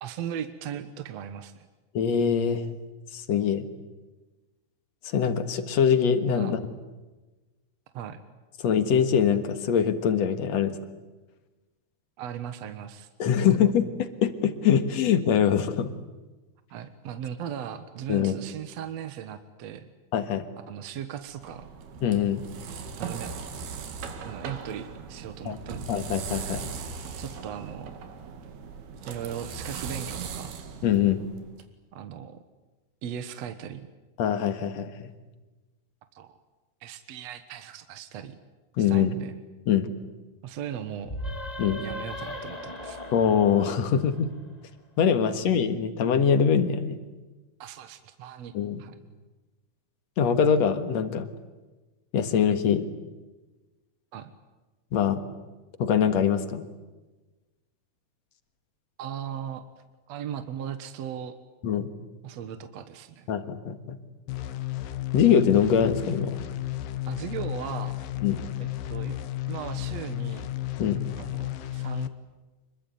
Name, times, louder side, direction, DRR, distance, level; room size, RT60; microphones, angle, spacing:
voice 1, 0.0-1.7 6.3-6.5 7.9-8.2 12.2-13.5 16.7-19.9 20.7-21.7 23.0-23.3 24.2-26.1 27.2-28.0 29.1-30.6 31.9-32.4 33.0-33.9 36.1-36.3 36.8-38.4 38.8-39.3 40.4-41.2 41.8-43.0 45.3-45.4 47.6-48.5 48.8-49.0 54.1-54.3 59.0-59.7 60.1-61.4 62.2-63.3 67.1-68.0 68.6-69.2 69.5-70.5 71.2-72.1, right 9 dB, 60° right, 9 dB, 1.9 m, -37 dB
voice 2, 1.9-2.7 3.1-3.6 5.0-6.6 8.6-10.8 13.2-15.9 18.1-18.4 20.1-20.5 22.0-22.4 25.5-25.6 25.9-26.7 30.8-31.2 34.2-35.1 38.8-39.1 39.7-39.9 41.6-41.8 43.1-44.3 45.0-47.0 48.5-48.8 50.2-51.3 52.1-52.9 54.9-55.2 55.8-56.6 61.6-61.9 63.3-64.0 65.1-66.4 68.2-68.4 70.8-71.0, left 8 dB, 55° left, 9 dB, 2.4 m, -23 dB
sound 1, 21.3-31.6, right 5 dB, 80° right, 4.1 m, -39 dB
sound 2, 41.0-44.6, equal, 15° left, 1.5 m, -38 dB
sound 3, 64.3-72.1, left 15 dB, 70° left, 2.6 m, -33 dB
26.0 x 23.0 x 9.3 m, 1.2 s
omnidirectional pair, 4.4 m